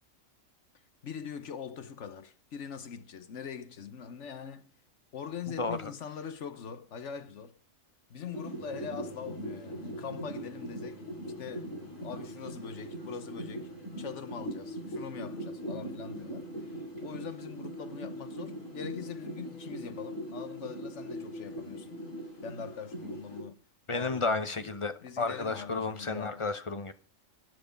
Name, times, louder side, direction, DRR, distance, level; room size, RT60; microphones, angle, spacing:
voice 1, 1.0-4.7 5.1-7.6 8.1-13.7 14.0-16.7 17.0-22.0 22.4-23.6 23.9-24.7 25.0-26.5, left 7 dB, 65° left, 1.3 m, -42 dB
voice 2, 5.6-5.9 23.9-26.9, left 3 dB, 30° left, 0.8 m, -32 dB
sound 1, 8.3-23.4, equal, 85° left, 4.4 m, -42 dB
sound 2, 8.6-17.3, right 4 dB, 15° right, 3.5 m, -54 dB
sound 3, 10.4-22.3, equal, 40° right, 1.4 m, -46 dB
14.0 x 9.5 x 5.3 m
omnidirectional pair, 1.3 m